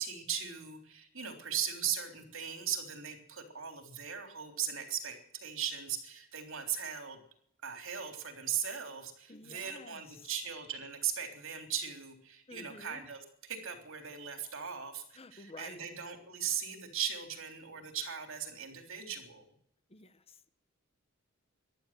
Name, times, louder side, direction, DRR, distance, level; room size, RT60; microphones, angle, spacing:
voice 1, 0.0-7.2 7.6-19.5, right 8 dB, 65° right, 5 dB, 3.5 m, -38 dB
voice 2, 9.3-10.3 12.5-13.0 15.1-15.9 19.9-20.5, left 3 dB, 30° left, 13 dB, 1.0 m, -51 dB
15.0 x 11.5 x 7.8 m, 0.69 s
head